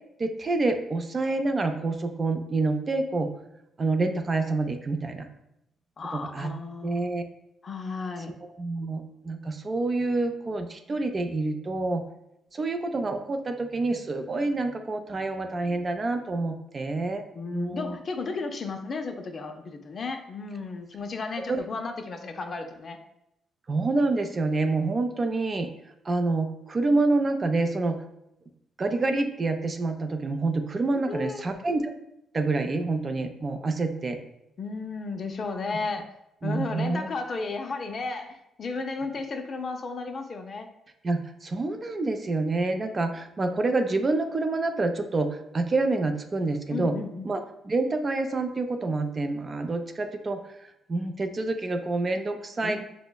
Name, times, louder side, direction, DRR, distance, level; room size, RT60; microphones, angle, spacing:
voice 1, 0.2-3.3 3.8-5.3 6.1-6.5 6.8-7.2 8.2-12.0 12.5-17.2 17.5-18.0 21.5-21.6 23.7-25.7 26.0-28.0 28.8-31.9 32.3-34.2 36.4-37.1 41.0-47.0 47.2-52.8, right 3 dB, 35° right, 6 dB, 0.4 m, -27 dB
voice 2, 6.0-7.0 7.6-8.3 17.4-23.0 30.9-31.4 34.6-36.1 36.4-40.7 46.7-47.3 52.6-52.8, left 4 dB, 45° left, 6 dB, 0.4 m, -34 dB
5.4 x 2.0 x 2.2 m, 0.83 s
cardioid pair, 90°, 0 cm